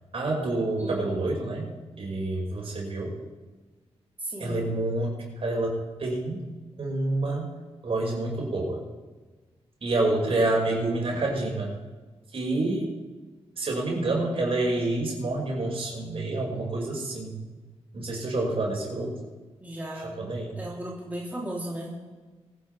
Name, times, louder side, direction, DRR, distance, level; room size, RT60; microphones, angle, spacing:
voice 1, 0.1-1.7 2.0-3.1 4.4-6.4 6.8-7.5 7.8-8.8 9.8-11.7 12.3-12.9 13.6-17.4 17.9-19.1 20.0-20.6, right 2 dB, 60° right, -2 dB, 5.7 m, -28 dB
voice 2, 0.8-1.2 4.2-4.6 19.6-20.2 20.6-22.0, right 1 dB, 15° right, -4 dB, 3.4 m, -35 dB
24.0 x 10.5 x 3.5 m, 1.3 s
cardioid pair, 90°, 11 cm